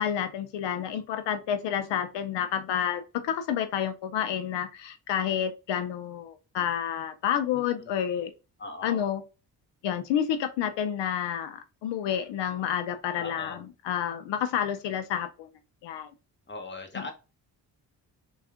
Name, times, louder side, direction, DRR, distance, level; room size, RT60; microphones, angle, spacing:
voice 1, 0.0-8.3 8.8-9.2 9.8-15.5 15.8-16.1, left 9 dB, 80° left, 0.6 m, -29 dB
voice 2, 7.5-7.9 8.6-9.0 13.1-13.6 16.5-17.1, left 3 dB, 25° left, 1.1 m, -40 dB
3.4 x 2.4 x 3.5 m
cardioid pair, 80°, 42 cm